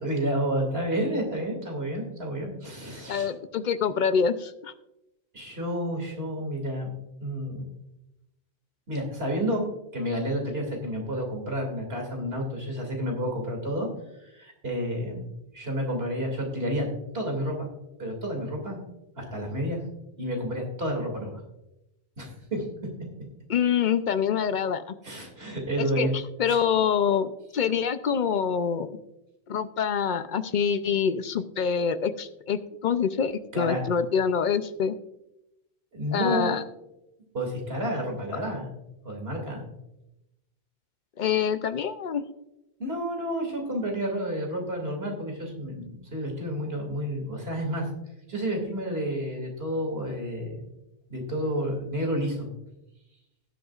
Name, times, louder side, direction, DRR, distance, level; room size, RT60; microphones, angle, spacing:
voice 1, 0.0-3.3 5.3-6.9 7.2-7.6 8.9-9.6 9.9-13.9 14.2-15.2 15.5-16.9 17.1-17.7 18.0-18.8 19.2-19.8 20.2-21.4 22.2-22.7 25.0-26.1 26.5-26.6 33.5-33.8 35.9-36.5 37.3-38.7 39.0-39.6 42.8-47.9 48.3-50.6 51.1-52.5, equal, 65° right, 2 dB, 2.8 m, -30 dB
voice 2, 3.1-4.7 23.5-25.0 25.8-26.1 26.4-29.0 29.5-34.9 36.1-36.6 41.2-42.2, left 7 dB, 55° left, 12 dB, 0.6 m, -26 dB
18.0 x 8.0 x 2.4 m, 0.90 s
omnidirectional pair, 1.1 m